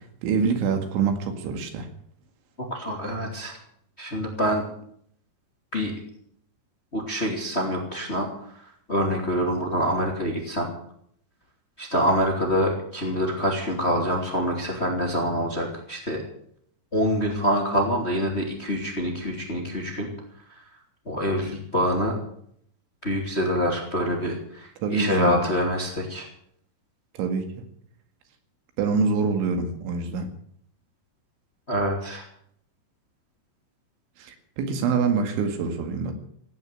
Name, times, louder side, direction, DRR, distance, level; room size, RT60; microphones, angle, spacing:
voice 1, 0.0-1.9 24.8-25.4 27.1-27.6 28.8-30.3 34.2-36.1, right 5 dB, 80° right, 6 dB, 4.4 m, -25 dB
voice 2, 2.7-3.6 4.0-4.6 5.7-5.9 6.9-8.6 8.9-10.7 11.8-16.2 16.9-20.1 21.1-22.2 23.0-26.3 31.7-32.2, equal, 20° left, 1 dB, 2.1 m, -26 dB
17.0 x 9.5 x 8.8 m, 0.66 s
omnidirectional pair, 5.5 m